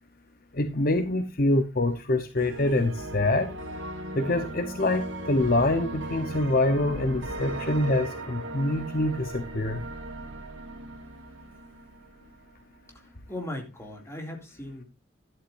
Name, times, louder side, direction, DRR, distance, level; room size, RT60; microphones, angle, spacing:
voice 1, 0.5-3.5 4.1-9.8, left 2 dB, 50° left, 8 dB, 1.0 m, -25 dB
sound 1, 2.4-12.4, right 1 dB, 90° right, 2.3 m, -37 dB
voice 2, 12.9-14.8, left 1 dB, 15° left, 2 dB, 2.5 m, -38 dB
12.0 x 11.5 x 2.6 m, 0.24 s
head